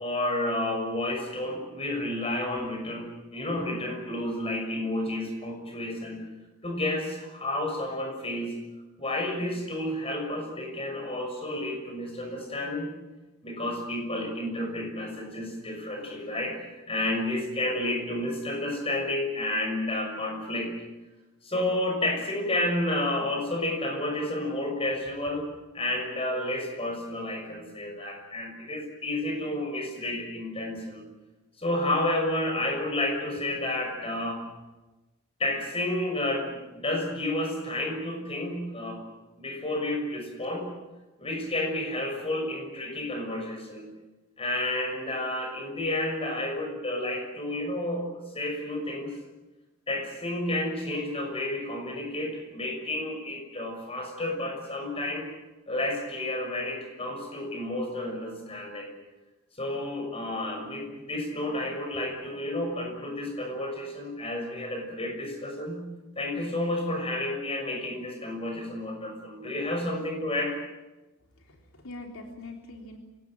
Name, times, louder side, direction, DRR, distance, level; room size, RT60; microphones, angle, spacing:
voice 1, 0.0-6.2 6.6-8.5 9.0-12.9 13.4-20.7 21.4-25.5 25.7-31.1 31.6-34.4 35.4-39.0 39.4-40.7 41.2-43.9 44.4-49.1 49.9-55.3 55.7-59.0 59.6-65.9 66.1-70.6, left 1 dB, 30° left, 3 dB, 6.6 m, -31 dB
voice 2, 71.4-73.0, left 2 dB, 80° left, 2 dB, 3.6 m, -43 dB
25.0 x 18.5 x 9.0 m, 1.1 s
head